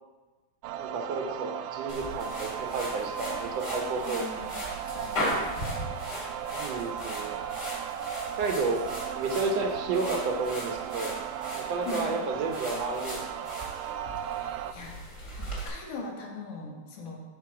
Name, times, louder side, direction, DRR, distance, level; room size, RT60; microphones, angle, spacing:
sound 1, 0.6-14.7, right 9 dB, 85° right, 2.1 m, -36 dB
voice 1, 0.8-4.2 6.5-7.4 8.4-8.8 9.1-11.2 11.5-13.2, right 3 dB, 65° right, 2 dB, 1.8 m, -31 dB
sound 2, 1.9-15.7, equal, 25° left, 2.1 m, -38 dB
voice 2, 4.1-5.8 11.9-12.2 14.2-14.9 15.4-17.3, left 3 dB, 70° left, 0 dB, 2.9 m, -41 dB
12.5 x 4.6 x 4.8 m, 1.2 s
omnidirectional pair, 3.7 m